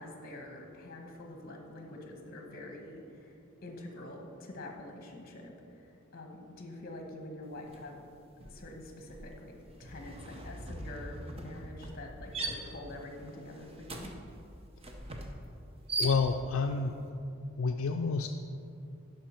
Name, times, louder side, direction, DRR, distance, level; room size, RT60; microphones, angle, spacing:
voice 1, 0.0-8.1 8.4-14.1, left 1 dB, 45° left, 2 dB, 1.3 m, -46 dB
sound 1, 7.7-8.0 8.2-16.7, right 2 dB, 30° right, 0.8 m, -41 dB
voice 2, 16.0-17.1 17.6-18.3, left 4 dB, 70° left, 5 dB, 0.4 m, -29 dB
11.5 x 5.5 x 4.5 m, 2.5 s
head